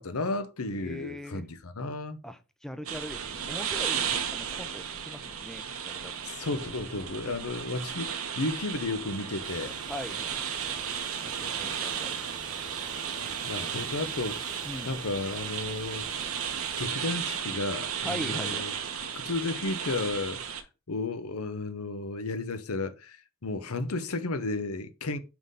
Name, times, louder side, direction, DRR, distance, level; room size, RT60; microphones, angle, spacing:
voice 1, 0.0-2.2 6.2-9.8 13.1-13.2 13.4-14.4 14.8-16.1 16.8-18.7 19.1-25.2, left 3 dB, 85° left, 0.8 m, -33 dB
voice 2, 0.8-1.4 2.2-6.2 7.2-7.5 9.9-10.4 11.2-12.2 14.6-14.9 18.0-18.7, equal, ahead, 0.5 m, -40 dB
sound 1, 2.9-20.6, right 8 dB, 75° right, 1.0 m, -34 dB
sound 2, 9.4-16.9, right 2 dB, 20° right, 1.2 m, -48 dB
6.0 x 3.8 x 5.3 m
head